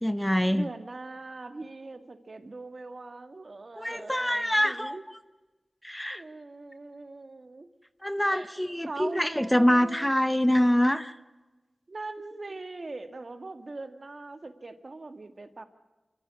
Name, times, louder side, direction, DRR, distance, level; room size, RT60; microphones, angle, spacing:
voice 1, 0.0-0.7 3.8-5.0 5.8-6.2 8.0-11.1, equal, 10° left, 13 dB, 0.8 m, -25 dB
voice 2, 0.5-5.0 6.1-7.7 8.3-8.5 8.8-10.1 11.9-15.6, right 3 dB, 55° right, 8 dB, 1.9 m, -41 dB
26.5 x 14.5 x 9.6 m, 1.2 s
wide cardioid pair, 65°, 0 cm